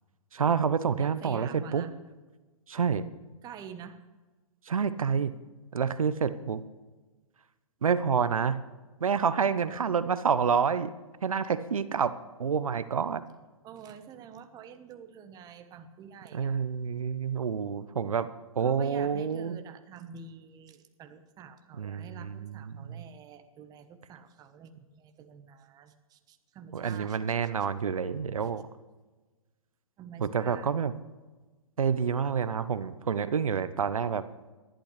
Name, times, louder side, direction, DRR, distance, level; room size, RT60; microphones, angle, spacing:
voice 1, 0.3-1.9 2.7-3.0 4.7-5.3 5.7-6.6 7.8-8.6 9.0-10.9 11.2-12.1 12.4-13.2 16.3-18.3 18.6-19.6 21.8-23.0 26.7-28.6 30.2-30.9 31.8-34.2, right 6 dB, 75° right, 14 dB, 0.8 m, -28 dB
voice 2, 1.0-1.9 3.4-4.0 13.6-16.6 18.6-27.2 30.0-30.7, right 6 dB, 20° right, 8 dB, 1.2 m, -47 dB
25.5 x 11.5 x 3.3 m, 1.2 s
figure-of-eight pair, 120°, 18 cm